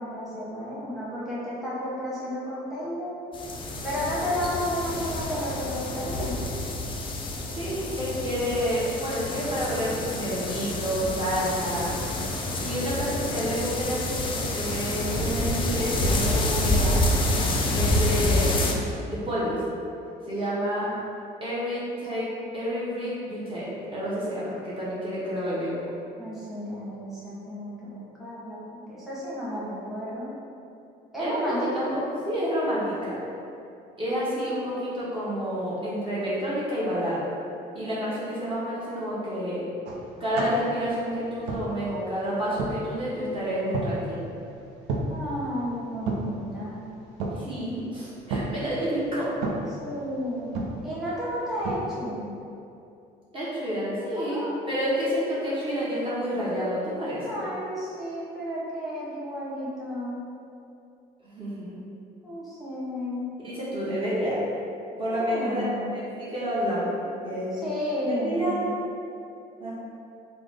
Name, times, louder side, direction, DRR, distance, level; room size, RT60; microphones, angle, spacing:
voice 1, 0.0-3.2 3.8-6.4 26.2-30.3 31.1-31.9 45.1-46.9 49.8-50.6 50.8-52.3 54.2-54.5 57.2-60.2 62.2-63.3 65.1-65.9 67.5-68.7, equal, ahead, -10 dB, 0.9 m, -32 dB
sound 1, 3.3-18.7, left 1 dB, 30° left, 0.4 m, -28 dB
voice 2, 7.5-11.9 12.6-17.0 17.7-18.6 19.1-19.6 20.3-20.9 21.4-22.3 22.5-25.9 31.2-31.6 31.9-33.2 34.0-37.3 37.7-39.6 40.2-44.2 47.3-49.3 53.3-57.4 61.3-61.8 63.4-64.4 65.0-65.6 65.9-67.0 67.2-67.6 68.1-68.6 69.6-69.7, equal, 30° right, -9 dB, 0.8 m, -29 dB
hands hitting table, 39.8-51.8, right 2 dB, 85° right, 0.4 m, -35 dB
3.3 x 2.0 x 3.5 m, 2.6 s
cardioid pair, 110°, 17 cm